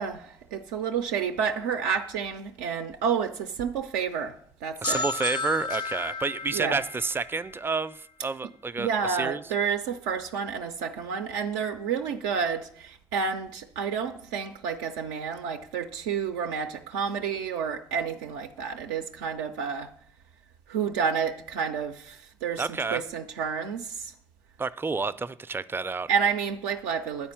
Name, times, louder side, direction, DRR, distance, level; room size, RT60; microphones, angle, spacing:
voice 1, 0.0-4.3 4.6-5.0 6.5-6.8 8.8-19.9 20.7-22.6 22.9-24.1 26.1-27.3, right 6 dB, 85° right, 0.4 m, -30 dB
sound 1, 4.8-8.5, left 3 dB, 45° left, 0.5 m, -34 dB
voice 2, 4.8-9.4 22.6-23.0 24.6-26.1, right 4 dB, 20° right, 0.4 m, -30 dB
9.4 x 4.3 x 5.6 m
hypercardioid pair, 60°, 11 cm